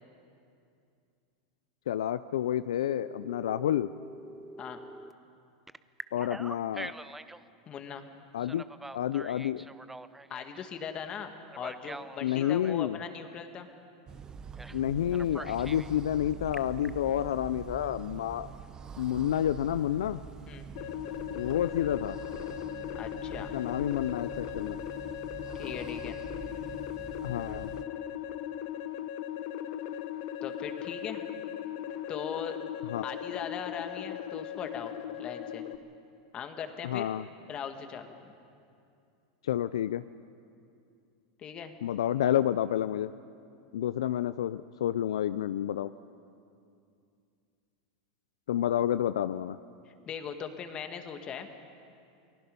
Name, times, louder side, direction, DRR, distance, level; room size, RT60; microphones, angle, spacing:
voice 1, 1.9-3.9 6.1-6.9 8.3-8.6 8.9-9.7 12.2-13.0 14.7-18.5 19.0-20.2 21.3-22.2 23.5-24.8 27.2-27.7 32.9-33.0 36.8-37.2 39.4-40.0 41.8-43.1 43.7-45.9 48.5-49.6, left 11 dB, 85° left, 14 dB, 0.4 m, -29 dB
Telephone, 2.9-5.1 5.7-7.4 8.4-10.7 11.5-12.8 14.6-14.8 15.1-15.9 16.3-16.9, right 2 dB, 5° right, 0.6 m, -44 dB
voice 2, 7.7-8.1 10.3-13.7 20.5-20.7 22.9-23.5 25.5-26.2 30.4-31.2 32.1-32.6 33.0-34.9 35.2-35.7 36.3-37.1 37.5-38.3 41.4-41.7 49.9-51.5, left 7 dB, 35° left, 6 dB, 1.9 m, -39 dB
sound 1, 14.1-27.8, right 6 dB, 25° right, 0.9 m, -45 dB
sound 2, 20.8-35.8, left 11 dB, 60° left, 1.0 m, -38 dB
29.0 x 19.5 x 5.4 m, 2.5 s
hypercardioid pair, 110°, 3 cm